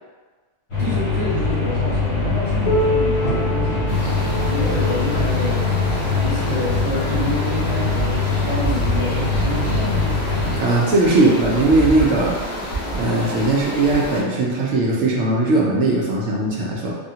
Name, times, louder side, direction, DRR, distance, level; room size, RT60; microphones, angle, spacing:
sound 1, 0.7-10.6, left 3 dB, 90° left, 1.7 m, -22 dB
voice 1, 0.8-3.9 4.5-5.7 6.0-10.1, equal, 30° right, -6 dB, 0.7 m, -28 dB
Piano, 2.6-8.0 8.8-8.9 9.4-9.5 10.3-10.4 11.4-11.5, left 1 dB, 40° left, 0.8 m, -28 dB
sound 2, 3.9-14.2, equal, 65° left, 1.2 m, -29 dB
voice 2, 10.6-12.4 12.9-16.9, right 2 dB, 75° right, -3 dB, 0.9 m, -18 dB
3.4 x 2.3 x 2.8 m, 1.4 s
omnidirectional pair, 1.2 m